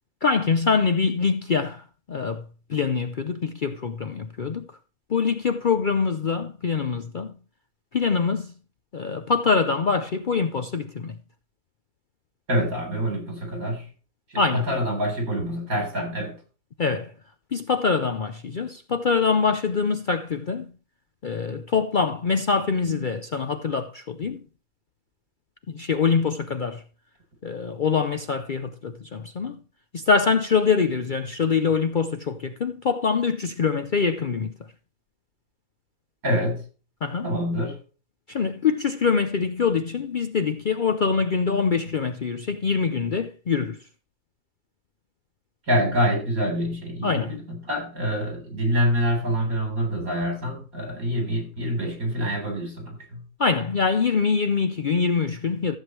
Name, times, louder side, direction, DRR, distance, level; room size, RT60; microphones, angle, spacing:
voice 1, 0.2-2.4 2.7-4.7 5.1-7.3 7.9-8.5 8.9-11.2 14.4-14.7 16.8-17.1 17.5-20.7 21.2-24.4 25.7-26.8 27.4-29.6 29.9-34.7 37.0-37.3 38.3-43.8 47.0-47.4 53.4-55.8, left 5 dB, 50° left, 0.6 m, -24 dB
voice 2, 12.5-13.9 14.3-16.4 36.2-36.7 37.2-37.8 45.7-53.2, equal, 75° right, 4.3 m, -26 dB
14.5 x 7.7 x 3.1 m
omnidirectional pair, 1.5 m